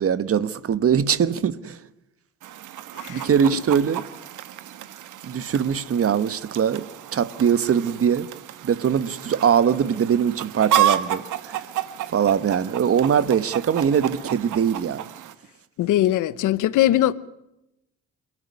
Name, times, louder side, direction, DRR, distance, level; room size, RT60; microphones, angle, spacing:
voice 1, 0.0-1.8 3.1-4.0 5.2-8.3 8.6-11.7 12.1-15.1, right 8 dB, 50° right, 1.3 m, -22 dB
Chicken rooster, 2.4-15.3, right 11 dB, 80° right, 1.5 m, -31 dB
voice 2, 3.0-3.6 15.8-17.1, left 13 dB, 85° left, 1.0 m, -21 dB
28.0 x 12.5 x 9.8 m
cardioid pair, 90°, 30 cm